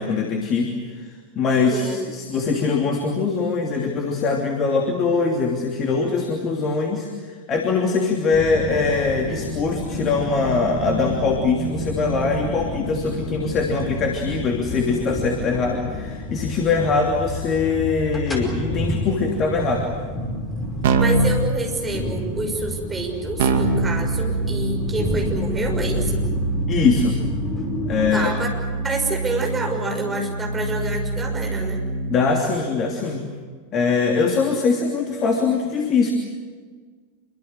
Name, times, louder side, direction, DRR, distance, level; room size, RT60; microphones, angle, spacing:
voice 1, 0.0-19.9 26.7-27.2 27.9-28.3 32.1-33.3 33.7-36.1, left 4 dB, 30° left, 3 dB, 2.9 m, -22 dB
sound 1, 8.3-28.1, left 1 dB, 10° left, 5.1 m, -30 dB
Keyboard (musical), 20.8-21.4 23.4-32.3, right 2 dB, 55° right, 2.4 m, -24 dB
voice 2, 21.0-26.2 28.1-28.5 28.8-31.8, right 3 dB, 15° right, 1 dB, 6.3 m, -27 dB
26.5 x 24.0 x 7.9 m, 1.5 s
figure-of-eight pair, 90°, 0 cm